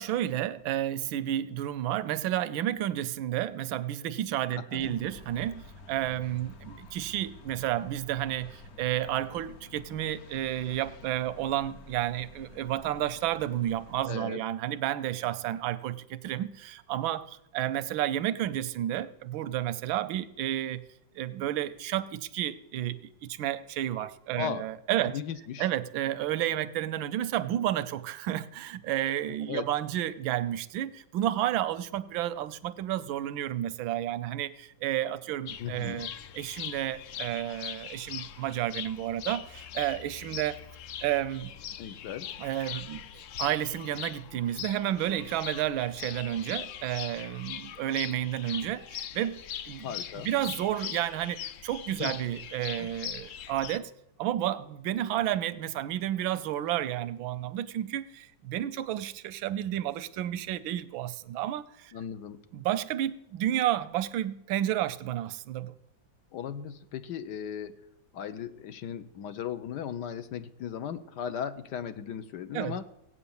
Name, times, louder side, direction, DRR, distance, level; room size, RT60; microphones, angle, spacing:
voice 1, 0.0-20.8 21.1-25.2 25.6-36.1 36.3-40.6 41.0-41.5 42.4-43.0 43.4-49.9 50.2-53.9 54.2-61.9 62.5-65.7 72.5-72.8, right 12 dB, 90° right, 15 dB, 1.5 m, -31 dB
voice 2, 4.6-5.0 14.1-14.4 24.4-24.7 25.0-25.7 29.5-29.7 35.6-36.0 41.8-42.3 49.8-50.3 52.0-52.1 52.8-52.9 61.9-62.4 66.3-67.8 68.1-72.8, left 8 dB, 65° left, 11 dB, 1.3 m, -37 dB
sound 1, 4.8-14.1, left 2 dB, 45° left, 0.9 m, -50 dB
sound 2, 35.5-53.8, left 10 dB, 90° left, 0.6 m, -41 dB
17.0 x 8.6 x 7.1 m, 0.85 s
omnidirectional pair, 2.1 m